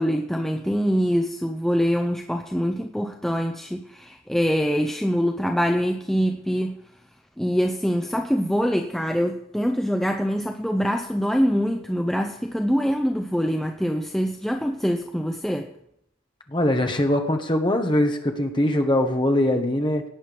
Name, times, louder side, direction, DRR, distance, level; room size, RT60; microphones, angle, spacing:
voice 1, 0.0-6.8 7.4-15.7, equal, ahead, 4 dB, 0.6 m, -24 dB
voice 2, 16.5-20.0, left 1 dB, 25° left, 4 dB, 1.4 m, -22 dB
17.5 x 9.1 x 5.3 m, 0.78 s
head